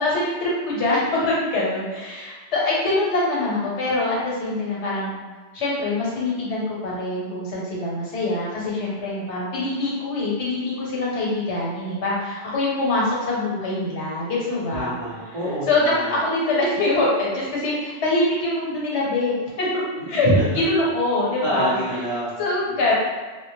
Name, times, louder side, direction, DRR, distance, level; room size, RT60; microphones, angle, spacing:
voice 1, 0.0-5.2 5.5-15.0 15.7-19.8 20.1-20.3 20.7-21.7 22.4-22.9, left 2 dB, 75° left, -5 dB, 1.0 m, -24 dB
voice 2, 14.7-16.2 20.0-20.4 21.4-22.3 22.7-22.9, right 1 dB, 45° right, -11 dB, 0.4 m, -26 dB
2.2 x 2.0 x 2.9 m, 1.4 s
omnidirectional pair, 1.2 m